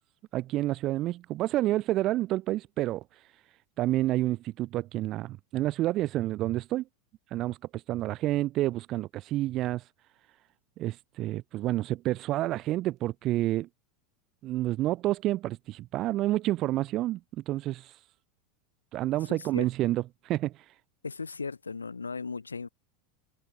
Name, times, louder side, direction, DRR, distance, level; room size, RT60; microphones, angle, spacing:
voice 1, 0.3-3.0 3.8-6.8 7.3-9.8 10.8-13.7 14.4-17.2 17.5-17.9 18.9-20.5, right 15 dB, 45° right, 3.3 m, -29 dB
voice 2, 19.2-19.7 21.0-22.7, left 4 dB, 90° left, 6.2 m, -37 dB
hypercardioid pair, 85°, 0 cm